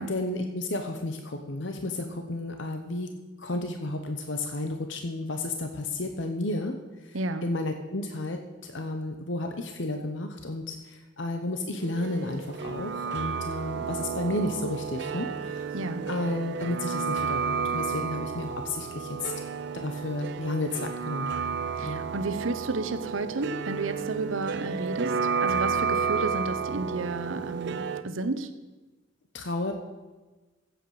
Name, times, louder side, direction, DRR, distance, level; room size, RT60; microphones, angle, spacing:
voice 1, 0.1-3.1 3.4-7.2 7.4-15.7 16.1-19.3 19.7-21.4 21.8-22.1 29.3-29.7, left 2 dB, 65° left, 5 dB, 0.9 m, -32 dB
voice 2, 7.1-7.5 15.7-16.1 21.7-28.5, right 2 dB, 85° right, 11 dB, 0.9 m, -32 dB
sound 1, 11.8-28.0, right 6 dB, 60° right, 0.5 m, -32 dB
15.0 x 7.9 x 4.9 m, 1.2 s
head